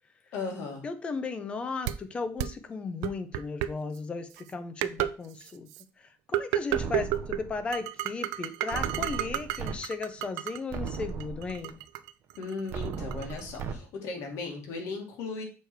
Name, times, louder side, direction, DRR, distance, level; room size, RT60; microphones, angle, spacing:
voice 1, 0.3-0.8 12.4-15.4, left 4 dB, 55° left, 1 dB, 1.9 m, -36 dB
voice 2, 0.8-5.7 6.0-11.8, left 4 dB, 20° left, 10 dB, 0.5 m, -36 dB
sound 1, 1.9-2.0 2.4-2.5 3.0-3.7 4.4-4.5 4.8-5.1 5.4-5.8 6.3-7.4 7.7-10.6 10.9-13.4, right 14 dB, 80° right, 0.4 m, -31 dB
sound 2, 6.7-7.7 8.7-9.7 10.2-10.3 10.7-11.7 12.7-13.7, right 6 dB, 40° right, 0.7 m, -36 dB
6.8 x 3.3 x 4.5 m, 0.36 s
cardioid pair, 175°, 6 cm